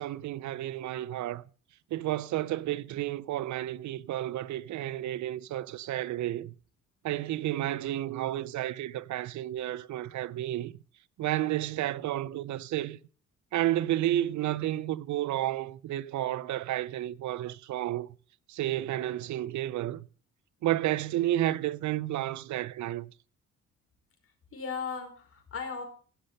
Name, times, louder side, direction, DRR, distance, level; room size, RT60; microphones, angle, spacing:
voice 1, 0.0-1.4 1.9-6.5 7.0-10.7 11.2-13.0 13.5-18.1 18.5-20.1 20.6-23.1, right 14 dB, 70° right, 0.6 m, -31 dB
voice 2, 24.5-25.8, left 5 dB, 45° left, 5.1 m, -37 dB
16.0 x 6.5 x 6.6 m
cardioid pair, 90°, 30 cm